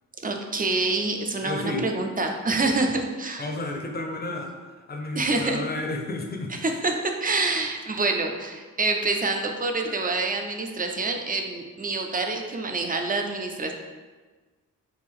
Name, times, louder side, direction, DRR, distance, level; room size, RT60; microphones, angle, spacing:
voice 1, 0.2-3.5 5.2-5.6 6.5-13.7, right 3 dB, 25° right, 3 dB, 0.4 m, -27 dB
voice 2, 1.4-1.9 2.6-2.7 3.4-4.5 4.9-6.5, left 2 dB, 30° left, 2 dB, 0.6 m, -31 dB
3.6 x 2.5 x 3.5 m, 1.4 s
cardioid pair, 65°, 34 cm